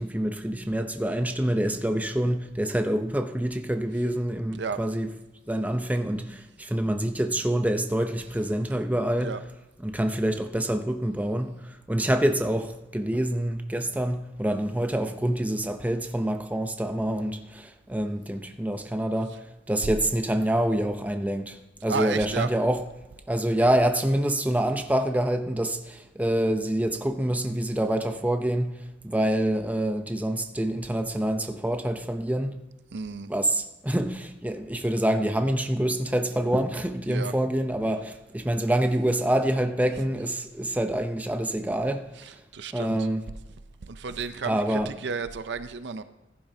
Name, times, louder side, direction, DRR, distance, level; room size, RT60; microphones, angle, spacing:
voice 1, 0.0-5.1 5.5-9.3 9.8-19.3 19.7-22.8 23.3-32.6 33.3-42.1 42.7-43.2 44.5-44.9, right 1 dB, 10° right, 0.6 m, -26 dB
voice 2, 21.9-22.5 32.9-33.3 37.1-37.4 42.2-43.1 43.8-46.0, right 5 dB, 65° right, 0.5 m, -32 dB
15.5 x 10.5 x 2.8 m
head